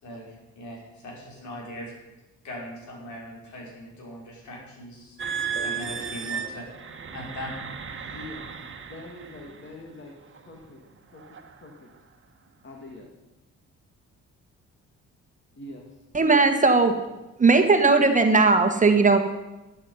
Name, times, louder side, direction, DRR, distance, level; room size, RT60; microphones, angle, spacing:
voice 1, 0.0-1.9 2.4-5.2 5.5-6.7 7.1-7.6 8.0-8.1, equal, 70° left, -2 dB, 5.3 m, -40 dB
sound 1, 5.2-9.7 10.3-10.6 11.2-11.5, right 6 dB, 40° right, 1.4 m, -34 dB
voice 2, 8.1-10.1 10.5-10.8 11.1-11.9 12.6-13.1 15.5-16.0, left 2 dB, 40° left, 1 dB, 2.1 m, -44 dB
voice 3, 16.1-16.9 17.4-19.2, right 3 dB, 25° right, 6 dB, 1.4 m, -18 dB
12.0 x 11.0 x 5.6 m, 1.0 s
cardioid pair, 90°, 30 cm